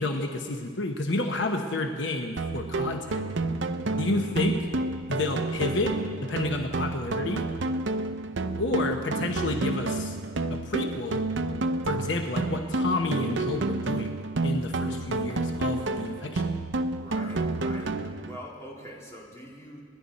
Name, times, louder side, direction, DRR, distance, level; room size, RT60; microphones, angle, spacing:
voice 1, 0.0-3.3 4.0-4.6 5.1-5.9 6.2-7.5 8.6-10.2 10.5-11.2 11.8-14.2 14.4-16.5, left 2 dB, 70° left, 4 dB, 1.0 m, -30 dB
sound 1, 2.4-18.4, right 2 dB, 65° right, 0.7 m, -30 dB
voice 2, 3.9-4.4 14.8-15.4 16.9-19.9, equal, 15° left, -4 dB, 2.7 m, -45 dB
27.5 x 11.0 x 4.2 m, 2.1 s
head